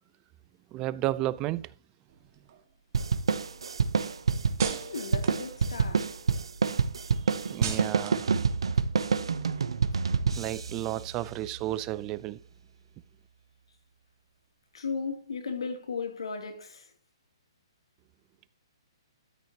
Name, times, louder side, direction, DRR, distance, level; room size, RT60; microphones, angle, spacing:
voice 1, 0.7-1.7 7.5-8.3 10.3-12.4, right 15 dB, 20° right, 0.4 m, -32 dB
sound 1, 2.1-6.2 6.6-10.1, right 7 dB, 45° right, 1.7 m, -43 dB
sound 2, 2.9-11.8, right 5 dB, 85° right, 0.7 m, -28 dB
voice 2, 4.8-6.2 9.9-10.0 14.7-16.9, left 5 dB, 85° left, 2.7 m, -36 dB
13.0 x 6.3 x 2.9 m
hypercardioid pair, 155°, 3 cm